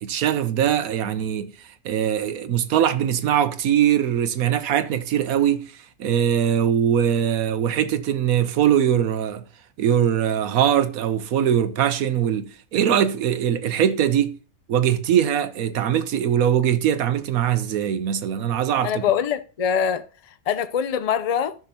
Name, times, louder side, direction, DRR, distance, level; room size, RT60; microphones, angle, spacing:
voice 1, 0.0-9.4 9.8-14.4 14.7-19.0, right 9 dB, 85° right, 1.2 m, -22 dB
voice 2, 18.8-20.1 20.5-21.5, left 8 dB, 50° left, 0.4 m, -23 dB
14.0 x 6.2 x 2.8 m
omnidirectional pair, 1.5 m